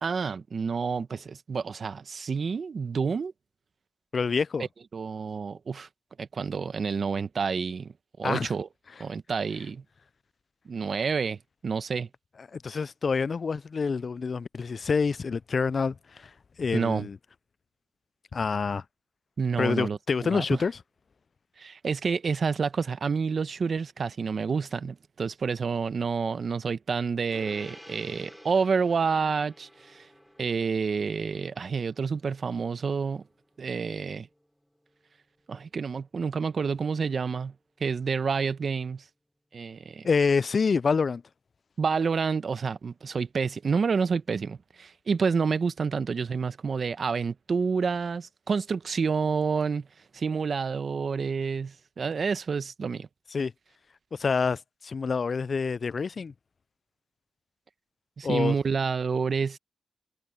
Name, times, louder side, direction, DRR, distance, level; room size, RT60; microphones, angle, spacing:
voice 1, 0.0-3.3 4.9-5.9 6.2-7.9 8.2-8.7 9.0-9.8 10.7-11.4 11.6-12.1 16.7-17.1 19.4-20.6 21.6-30.1 30.4-33.2 33.6-34.3 35.5-37.5 37.8-39.0 39.5-40.1 41.8-49.9 50.1-53.1 58.2-59.6, right 5 dB, 55° right, 1.0 m, -29 dB
voice 2, 4.1-4.7 8.2-8.5 12.5-16.3 16.6-17.2 18.3-18.8 19.6-20.8 40.0-41.2 53.3-53.5 54.1-56.3 58.2-58.6, left 5 dB, 55° left, 0.3 m, -27 dB
Gong, 27.3-37.0, equal, 5° left, 6.5 m, -53 dB
cardioid pair, 60°, 0 cm